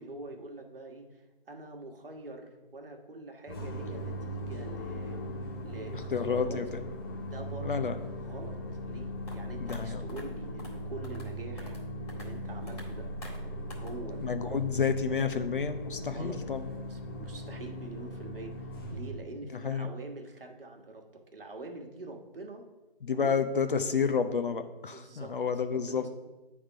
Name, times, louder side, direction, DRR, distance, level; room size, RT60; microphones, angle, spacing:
voice 1, 0.0-5.2 5.6-6.6 7.2-7.9 8.2-11.8 12.1-13.1 13.8-14.6 16.0-16.4 16.9-22.6 23.1-23.5 24.9-25.4 25.7-26.1, right 2 dB, 65° right, 2 dB, 1.3 m, -45 dB
sound 1, 3.5-19.2, equal, 25° left, 1.1 m, -39 dB
voice 2, 6.1-6.8 7.6-8.0 9.6-10.0 14.2-16.7 19.6-19.9 23.0-26.1, left 6 dB, 60° left, 8 dB, 0.7 m, -30 dB
sound 2, 9.3-9.4 9.7-9.8 10.1-10.2 10.6-10.7 11.0-11.3 11.6-11.8 12.1-12.3 12.7-12.9 13.2-13.4 13.7-13.9, left 2 dB, 40° left, 2.0 m, -47 dB
9.1 x 3.6 x 4.6 m, 1.1 s
figure-of-eight pair, 165°, 30 cm